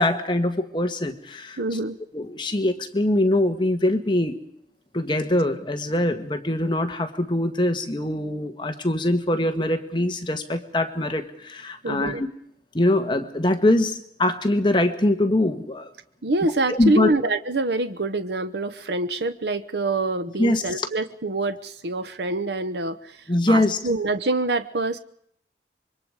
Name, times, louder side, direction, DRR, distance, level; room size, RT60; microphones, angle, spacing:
voice 1, 0.0-1.6 2.1-4.4 4.9-12.3 12.7-15.9 16.7-17.1 20.4-20.9 23.3-23.8, left 1 dB, 25° left, 7 dB, 1.4 m, -23 dB
voice 2, 1.6-2.0 11.8-12.2 16.2-25.0, right 2 dB, 75° right, 11 dB, 1.0 m, -25 dB
26.0 x 23.5 x 4.8 m, 0.70 s
head